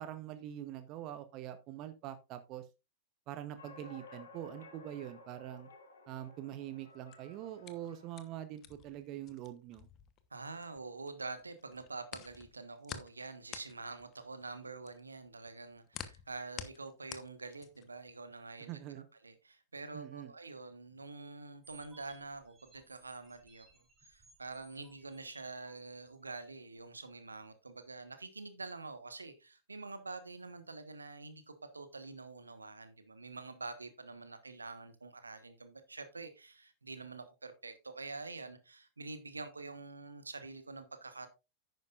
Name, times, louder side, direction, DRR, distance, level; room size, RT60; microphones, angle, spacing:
voice 1, 0.0-2.7 3.3-5.7 6.1-9.9 18.7-19.0 19.9-20.3, right 12 dB, 40° right, 0.9 m, -44 dB
sound 1, 3.6-8.4, left 3 dB, 70° left, 2.0 m, -55 dB
sound 2, 6.9-11.1 11.4-18.0, left 11 dB, 35° left, 1.1 m, -49 dB
voice 2, 10.3-41.3, right 3 dB, 80° right, 1.3 m, -46 dB
sound 3, 21.6-26.2, right 5 dB, 20° right, 3.6 m, -63 dB
10.5 x 9.3 x 2.5 m
figure-of-eight pair, 90°, 0 cm